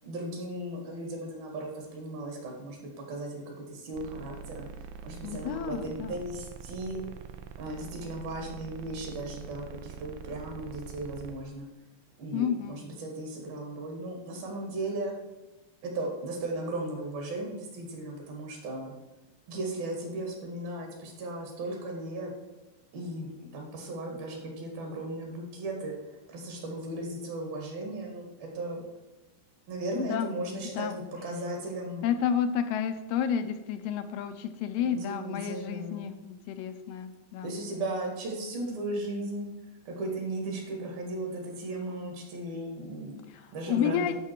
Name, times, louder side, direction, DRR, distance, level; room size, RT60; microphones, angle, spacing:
voice 1, 0.0-4.7 5.0-7.0 7.6-11.7 12.2-15.2 15.8-18.9 19.5-22.3 22.9-26.0 26.3-28.8 29.7-32.1 34.8-36.1 37.4-39.5 39.9-43.2 43.5-44.1, right 1 dB, 70° right, 1 dB, 3.7 m, -36 dB
sound 1, 3.9-11.3, right 6 dB, 85° right, 2.6 m, -44 dB
voice 2, 5.2-6.2 12.3-12.8 30.0-30.3 30.6-31.0 32.0-37.5 43.3-43.4 43.7-44.1, left 8 dB, 85° left, 8 dB, 2.7 m, -31 dB
12.0 x 5.8 x 4.5 m, 1.1 s
omnidirectional pair, 4.5 m